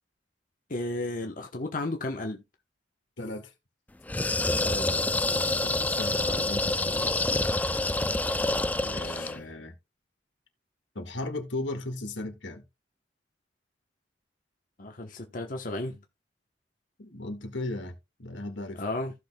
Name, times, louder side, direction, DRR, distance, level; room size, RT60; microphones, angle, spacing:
voice 1, 0.7-2.4 4.6-5.2 8.8-9.3 14.8-16.0 18.8-19.1, left 2 dB, 45° left, 1.1 m, -34 dB
voice 2, 3.2-3.5 5.3-7.1 8.9-9.7 11.0-12.6 17.0-18.8, left 2 dB, 85° left, 1.9 m, -37 dB
growl beast, 4.1-9.4, left 2 dB, 10° left, 0.4 m, -27 dB
15.0 x 6.3 x 2.3 m
head